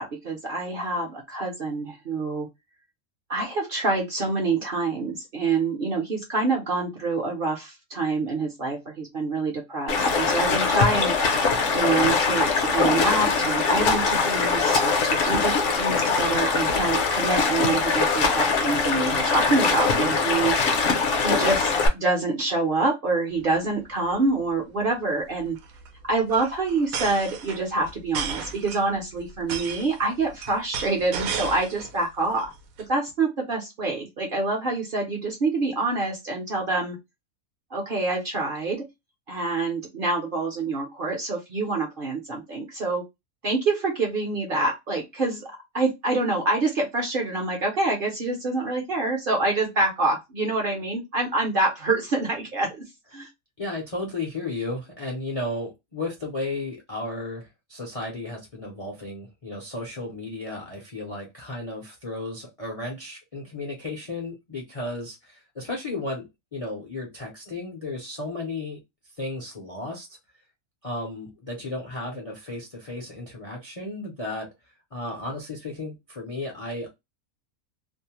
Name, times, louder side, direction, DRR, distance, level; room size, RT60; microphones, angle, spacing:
voice 1, 0.0-2.5 3.3-11.2 11.7-20.5 21.2-25.6 26.1-32.5 32.9-37.0 37.7-38.9 39.3-43.0 43.4-52.8 53.1-53.3, right 3 dB, 50° right, 1 dB, 0.8 m, -26 dB
Stream, 9.9-21.9, left 4 dB, 65° left, 0.9 m, -22 dB
sound 1, 23.4-23.6 23.8-23.9 24.1-24.4 25.4-32.0 32.4-32.8, right 7 dB, 80° right, 1.0 m, -34 dB
voice 2, 53.6-68.8 69.2-70.2 70.8-74.5 74.9-76.9, left 2 dB, 40° left, 0 dB, 0.5 m, -34 dB
2.6 x 2.1 x 2.8 m, 0.20 s
omnidirectional pair, 1.5 m